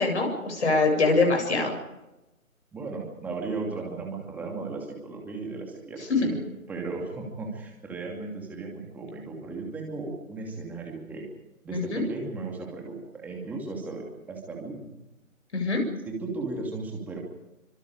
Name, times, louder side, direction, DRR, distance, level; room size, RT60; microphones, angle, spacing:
voice 1, 0.0-1.7 6.2-6.3 11.7-12.0 15.5-15.8, left 3 dB, 55° left, 3 dB, 7.6 m, -24 dB
voice 2, 2.7-6.4 6.7-11.2 11.6-15.0 16.0-17.2, right 3 dB, 5° right, 0 dB, 2.7 m, -35 dB
27.5 x 25.5 x 5.0 m, 0.98 s
figure-of-eight pair, 160°, 41 cm